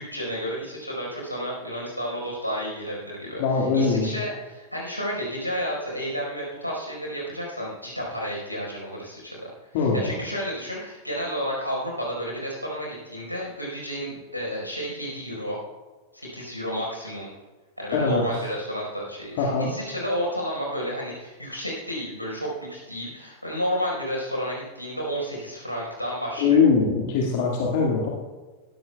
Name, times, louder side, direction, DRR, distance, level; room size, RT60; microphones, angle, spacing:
voice 1, 0.0-9.5 9.8-15.6 16.1-17.3 17.8-26.6, equal, 90° left, -3 dB, 4.6 m, -31 dB
voice 2, 3.4-4.1 9.7-10.1 17.9-18.2 19.4-19.7 26.4-28.1, left 5 dB, 50° left, -2 dB, 2.0 m, -22 dB
19.5 x 14.0 x 2.3 m, 1.3 s
figure-of-eight pair, 90°, 0 cm